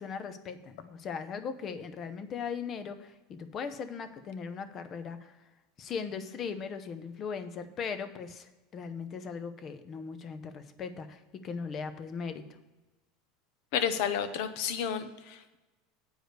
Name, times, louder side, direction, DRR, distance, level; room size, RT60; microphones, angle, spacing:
voice 1, 0.0-5.3 5.8-8.5 8.7-12.4, left 6 dB, 35° left, 10 dB, 0.7 m, -38 dB
voice 2, 13.7-15.6, left 8 dB, 65° left, 10 dB, 0.8 m, -31 dB
8.0 x 4.9 x 6.5 m, 1.1 s
supercardioid pair, 135°, 0 cm